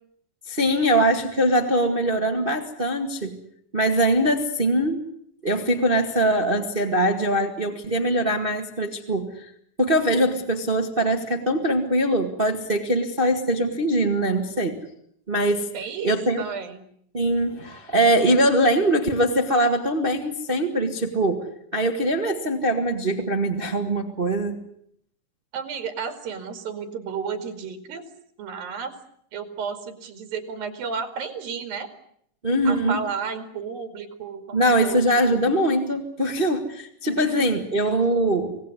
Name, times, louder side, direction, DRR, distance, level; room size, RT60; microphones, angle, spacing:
voice 1, 0.5-3.4 3.7-5.0 5.4-9.5 9.8-14.8 15.3-15.7 16.0-16.4 17.1-21.4 21.7-24.5 32.4-33.0 34.5-38.6, right 1 dB, 25° right, 5 dB, 1.2 m, -22 dB
voice 2, 15.7-16.8 25.5-28.1 28.4-28.9 29.3-31.9 32.7-35.0 37.1-37.5, right 6 dB, 85° right, 7 dB, 4.2 m, -32 dB
26.0 x 18.5 x 9.7 m, 0.70 s
omnidirectional pair, 4.0 m